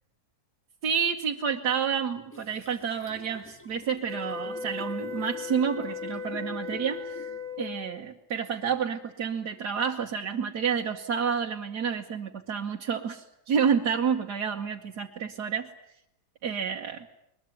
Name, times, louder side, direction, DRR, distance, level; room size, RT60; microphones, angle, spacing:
voice 1, 0.8-7.3 7.6-15.7 16.4-17.1, right 7 dB, 80° right, 0 dB, 1.7 m, -29 dB
sound 1, 2.3-7.7, right 1 dB, 10° left, 1.7 m, -46 dB
sound 2, 4.0-8.0, left 5 dB, 25° right, 1.3 m, -37 dB
21.5 x 21.5 x 9.3 m, 0.81 s
omnidirectional pair, 1.7 m